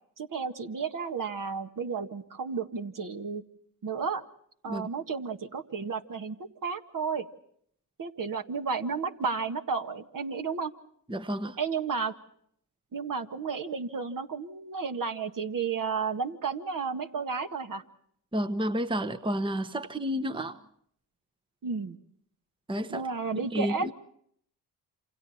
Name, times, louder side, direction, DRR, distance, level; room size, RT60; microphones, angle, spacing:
voice 1, 0.2-3.4 3.8-4.2 4.6-6.4 6.6-7.3 8.0-10.7 11.6-12.1 12.9-17.8 21.6-22.0 22.9-23.9, right 5 dB, 50° right, 6 dB, 1.8 m, -32 dB
voice 2, 11.1-11.6 18.3-20.6 22.7-23.1 23.3-23.9, equal, 10° right, 11 dB, 1.1 m, -31 dB
28.0 x 26.0 x 4.3 m, 0.67 s
supercardioid pair, 60°, 43 cm